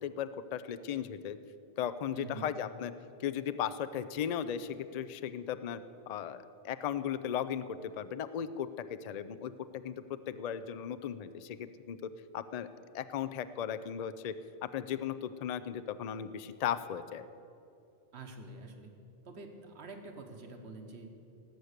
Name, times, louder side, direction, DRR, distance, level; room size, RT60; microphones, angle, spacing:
voice 1, 0.0-1.4 1.8-2.9 3.2-5.8 6.1-12.0 12.3-12.7 12.9-14.3 14.7-17.2, left 9 dB, 50° left, 12 dB, 0.5 m, -36 dB
voice 2, 2.1-2.5 18.1-18.9 19.2-21.1, right 3 dB, 85° right, 4 dB, 1.4 m, -46 dB
18.5 x 8.1 x 6.6 m, 2.8 s
omnidirectional pair, 1.1 m